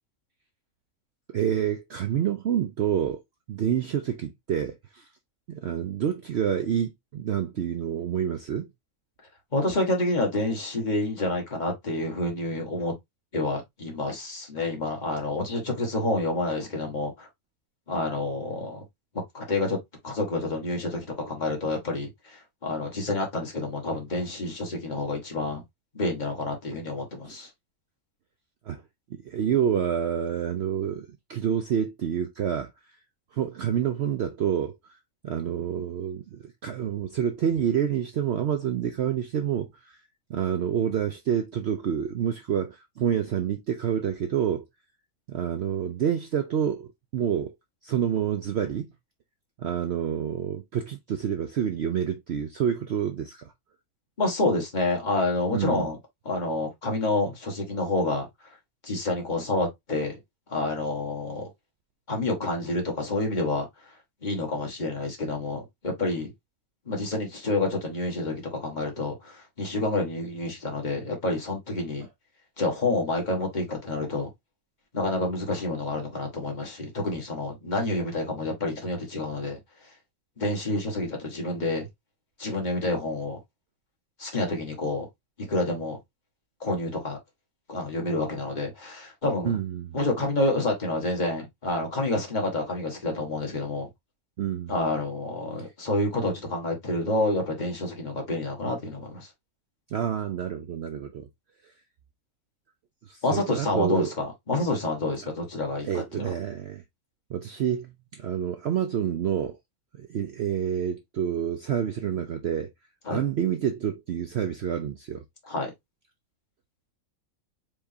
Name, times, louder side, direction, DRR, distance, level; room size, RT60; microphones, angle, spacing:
voice 1, 1.3-3.2 3.5-5.0 5.5-8.7 27.3-27.4 28.7-28.8 29.1-32.7 33.3-34.8 35.2-40.0 40.3-44.7 45.3-47.5 47.8-48.9 49.6-53.4 55.5-55.9 89.4-90.0 94.4-94.7 99.9-101.3 103.1-104.1 105.8-106.8 107.3-109.6 110.0-112.7 113.1-115.2, right 9 dB, 65° right, 0.7 m, -28 dB
voice 2, 9.5-12.9 13.3-17.3 17.9-18.8 19.1-19.8 20.0-25.6 25.9-27.5 54.2-56.0 56.2-58.3 58.8-60.1 60.5-61.5 62.1-63.7 64.2-66.3 66.8-72.1 72.6-74.3 74.9-79.6 80.4-81.9 82.4-83.4 84.2-85.1 85.4-86.0 86.6-87.2 87.7-89.6 89.9-93.9 94.7-99.3 103.2-106.3 113.0-113.2 115.4-115.7, left 2 dB, 30° left, 1.6 m, -28 dB
4.7 x 3.6 x 2.7 m
omnidirectional pair, 1.6 m